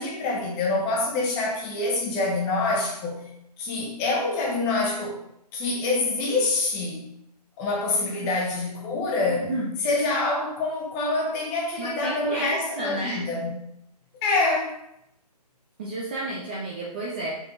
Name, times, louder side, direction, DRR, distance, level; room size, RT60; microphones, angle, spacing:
voice 1, 0.0-3.3 3.6-5.2 5.5-7.0 7.6-9.5 9.8-13.5 14.2-14.7, left 2 dB, 15° left, -2 dB, 1.1 m, -26 dB
voice 2, 9.3-9.7 11.8-13.2 15.8-17.4, right 1 dB, 15° right, -5 dB, 0.6 m, -32 dB
6.0 x 5.8 x 3.9 m, 0.79 s
figure-of-eight pair, 155°, 21 cm